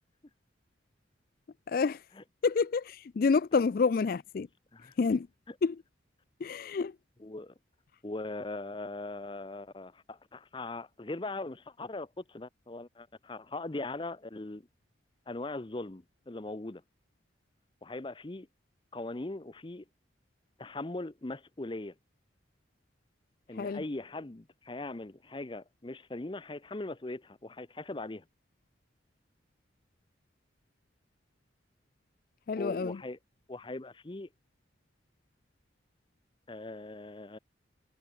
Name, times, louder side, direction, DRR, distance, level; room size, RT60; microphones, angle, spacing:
voice 1, 1.7-2.1 2.4-4.5 5.0-5.3 5.6-5.8 6.4-7.0 23.5-23.8 32.5-33.0, left 5 dB, 50° left, 0.4 m, -28 dB
voice 2, 7.2-7.5 8.0-14.7 15.3-16.8 17.8-18.5 18.9-19.8 20.6-21.9 23.5-28.2 32.6-33.2 33.5-34.3 36.5-37.4, left 2 dB, 25° left, 0.7 m, -40 dB
head